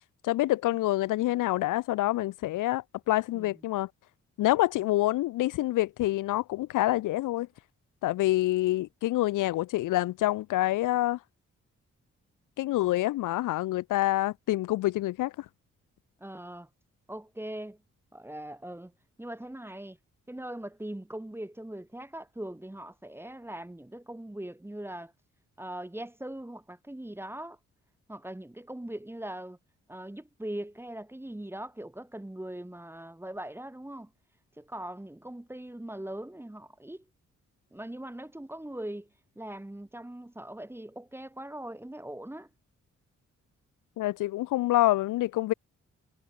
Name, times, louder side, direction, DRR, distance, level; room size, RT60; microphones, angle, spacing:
voice 1, 0.2-3.9 4.4-7.5 8.0-11.2 12.6-15.5 44.0-45.5, left 16 dB, 80° left, 0.5 m, -27 dB
voice 2, 16.2-16.7 17.1-17.8 18.1-18.9 19.2-20.0 20.3-25.1 25.6-27.6 28.1-29.6 29.9-34.1 34.6-37.0 37.7-39.1 39.4-42.5, right 1 dB, 5° right, 0.8 m, -41 dB
supercardioid pair, 50°, 31 cm